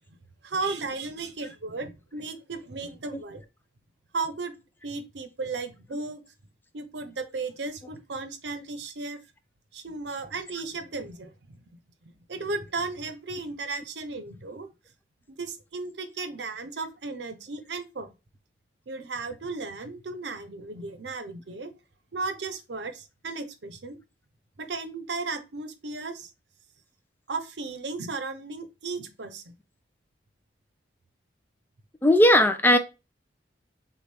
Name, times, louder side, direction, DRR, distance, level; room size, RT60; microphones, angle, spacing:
voice 1, 0.4-3.4 4.1-4.5 4.8-6.2 6.7-9.2 9.7-11.8 12.3-14.7 15.4-18.1 18.9-21.7 22.1-24.0 24.6-26.3 27.3-29.5, right 3 dB, 80° right, 0.7 m, -35 dB
voice 2, 32.0-32.8, left 1 dB, 10° left, 0.4 m, -18 dB
6.6 x 2.4 x 3.3 m
head